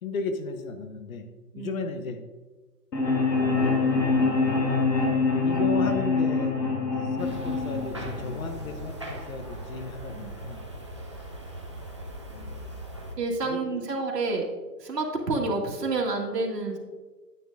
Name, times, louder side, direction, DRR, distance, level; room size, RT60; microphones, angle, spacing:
voice 1, 0.0-1.3 1.6-2.2 3.3-3.8 5.4-6.6 7.0-10.6 12.3-12.8 13.4-13.6, left 4 dB, 55° left, 7 dB, 1.1 m, -35 dB
voice 2, 1.5-1.9 10.1-10.4 13.2-14.5 14.8-16.8, right 3 dB, 80° right, 0 dB, 2.0 m, -29 dB
sound 1, 2.9-8.9, left 4 dB, 85° left, 2.1 m, -25 dB
sound 2, 7.2-13.1, right 1 dB, 20° right, 0.4 m, -39 dB
9.6 x 8.0 x 2.6 m, 1.3 s
hypercardioid pair, 150°, 49 cm